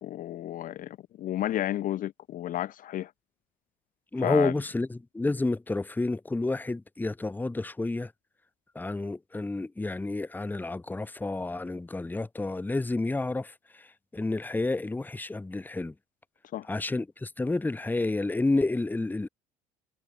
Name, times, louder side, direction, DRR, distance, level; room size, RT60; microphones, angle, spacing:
voice 1, 0.0-3.1 4.2-4.5 16.5-16.7, left 12 dB, 45° left, 0.7 m, -32 dB
voice 2, 4.1-8.1 8.7-13.9 14.1-15.9 16.7-19.3, left 2 dB, 10° left, 1.0 m, -30 dB
figure-of-eight pair, 60°, 20 cm